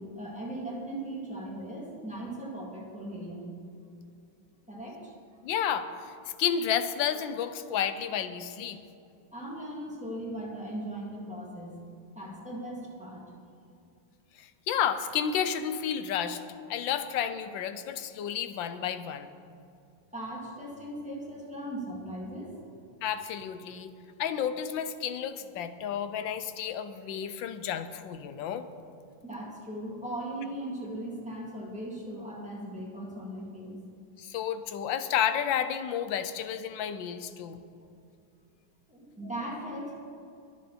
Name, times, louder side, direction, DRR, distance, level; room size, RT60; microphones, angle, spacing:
voice 1, 0.0-3.5 4.7-5.1 9.3-11.8 12.1-13.2 20.1-22.8 29.2-33.8 38.9-39.9, right 1 dB, 5° right, -4 dB, 2.6 m, -38 dB
voice 2, 5.4-6.1 6.4-8.8 14.4-16.4 16.7-19.3 23.0-23.9 24.2-28.7 34.2-37.6, left 8 dB, 75° left, 11 dB, 1.4 m, -31 dB
22.5 x 8.1 x 4.3 m, 2.6 s
omnidirectional pair, 2.2 m